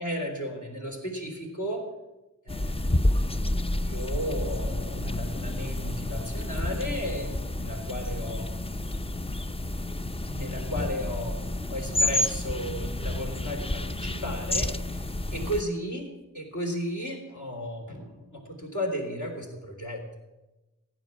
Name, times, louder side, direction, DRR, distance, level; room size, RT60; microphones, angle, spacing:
voice 1, 0.0-1.9 2.5-2.9 3.8-8.5 10.3-11.4 11.7-15.0 15.3-20.0, equal, 65° left, 0 dB, 3.6 m, -34 dB
sound 1, 2.5-15.6, left 1 dB, 20° left, 0.5 m, -30 dB
15.0 x 9.7 x 6.0 m, 1.0 s
wide cardioid pair, 40°, 32 cm